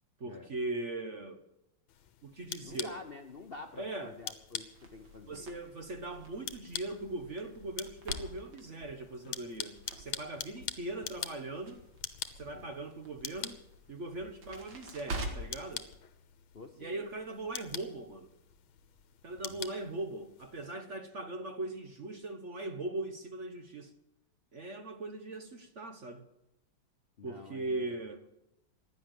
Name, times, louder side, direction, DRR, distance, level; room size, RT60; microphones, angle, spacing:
voice 1, 0.2-1.4 2.2-3.0 3.8-4.2 5.3-11.8 12.4-13.6 13.9-15.9 16.8-18.3 19.2-23.9 24.5-26.3 27.2-28.2, right 2 dB, 45° right, 1.1 m, -40 dB
sound 1, 1.9-20.7, left 10 dB, 80° left, 1.8 m, -45 dB
voice 2, 2.6-5.5 12.5-12.8 16.5-17.0 19.5-19.8 27.2-28.0, left 4 dB, 50° left, 0.7 m, -48 dB
Crackle, 4.7-15.7, right 2 dB, 65° right, 2.7 m, -46 dB
15.5 x 10.5 x 7.7 m
omnidirectional pair, 2.2 m